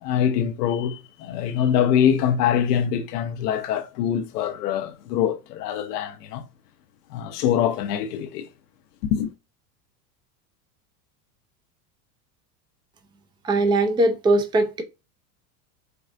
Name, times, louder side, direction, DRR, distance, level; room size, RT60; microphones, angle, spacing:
voice 1, 0.0-6.4 7.1-8.5 9.0-9.3, left 9 dB, 75° left, 0.8 m, -24 dB
voice 2, 13.4-14.8, right 2 dB, 10° right, 0.5 m, -20 dB
4.5 x 2.4 x 2.5 m
supercardioid pair, 110°, 48 cm